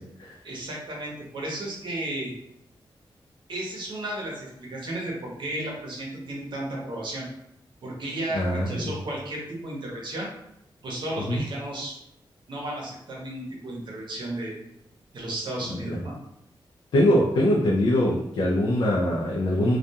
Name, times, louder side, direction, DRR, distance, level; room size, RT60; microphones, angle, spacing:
voice 1, 0.4-2.3 3.5-7.3 7.8-10.3 10.8-11.9 12.5-14.6 15.1-16.1, right 1 dB, 65° right, -2 dB, 0.8 m, -33 dB
voice 2, 8.3-8.9 11.3-11.4 15.7-16.0 16.9-19.8, left 1 dB, 65° left, -4 dB, 0.4 m, -23 dB
2.3 x 2.2 x 2.7 m, 0.80 s
wide cardioid pair, 160°, 9 cm